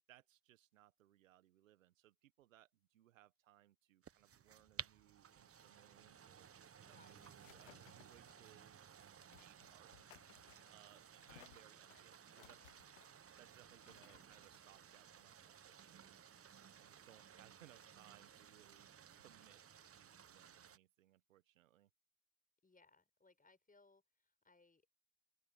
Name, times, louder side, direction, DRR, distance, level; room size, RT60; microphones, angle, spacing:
voice 1, 0.1-6.5 6.8-9.9 10.7-12.8 13.4-16.2 16.8-18.9 19.2-19.6 19.9-21.9, right 14 dB, 90° right, 1.5 m, -67 dB
sound 1, 4.0-20.8, right 8 dB, 35° right, 1.3 m, -58 dB
sound 2, 6.6-15.9, left 15 dB, 90° left, 0.7 m, -67 dB
voice 2, 6.8-7.2 11.7-11.9 22.6-24.9, left 3 dB, 20° left, 6.9 m, -70 dB
open air
hypercardioid pair, 55°, 38 cm